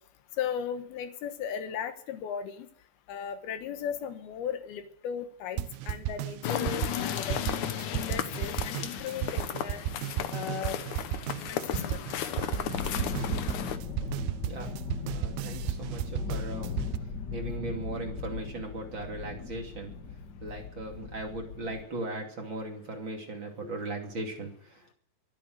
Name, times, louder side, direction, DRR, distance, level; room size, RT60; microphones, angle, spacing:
voice 1, 0.4-2.7 3.1-7.4 7.9-9.9 10.3-10.8 11.4-12.0 14.6-14.7 20.5-20.6, left 8 dB, 70° left, 9 dB, 2.9 m, -36 dB
sound 1, 5.6-17.0, right 14 dB, 75° right, 2.5 m, -34 dB
sound 2, 6.4-13.8, left 10 dB, 85° left, 1.7 m, -34 dB
sound 3, 12.3-21.8, left 5 dB, 40° left, 1.6 m, -38 dB
voice 2, 15.0-16.8 17.3-19.9 20.4-24.9, right 2 dB, 35° right, 1 dB, 2.7 m, -38 dB
23.5 x 9.3 x 6.5 m, 0.64 s
omnidirectional pair, 5.0 m